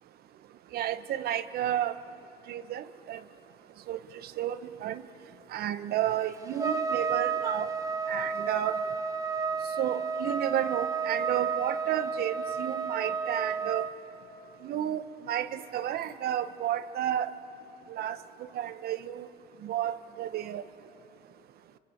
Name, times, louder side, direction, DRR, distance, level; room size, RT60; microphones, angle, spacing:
voice 1, 0.7-1.9 2.5-3.2 3.9-5.0 5.5-7.7 8.1-8.8 9.8-13.9 14.6-17.3 17.9-18.2 18.5-19.3 19.6-20.6, right 11 dB, 65° right, 12 dB, 0.9 m, -32 dB
Trumpet, 6.6-13.9, right 5 dB, 20° right, 1.4 m, -31 dB
24.5 x 23.5 x 8.4 m, 2.7 s
cardioid pair, 110°, 17 cm